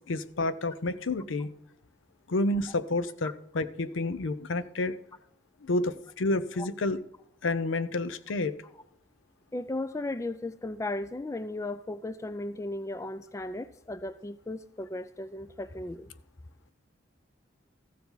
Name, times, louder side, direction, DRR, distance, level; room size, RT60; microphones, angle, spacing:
voice 1, 0.1-1.5 2.3-4.9 5.6-7.0 7.4-8.6, left 2 dB, 80° left, 14 dB, 0.6 m, -29 dB
voice 2, 9.5-16.1, left 2 dB, 15° left, 14 dB, 0.3 m, -36 dB
14.5 x 7.1 x 3.9 m, 0.73 s
head